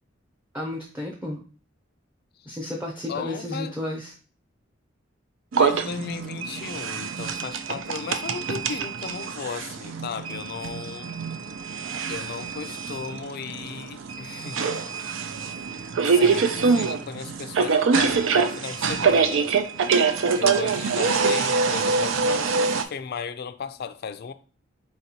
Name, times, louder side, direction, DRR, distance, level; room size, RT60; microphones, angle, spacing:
voice 1, 0.5-1.4 2.5-4.1, left 1 dB, 10° right, 0.6 m, -32 dB
voice 2, 3.1-3.8 5.6-11.1 12.1-14.7 16.0-19.5 20.4-24.3, left 6 dB, 55° left, 0.4 m, -35 dB
sound 1, 5.5-22.8, right 5 dB, 85° right, 0.5 m, -25 dB
4.3 x 4.0 x 2.9 m
head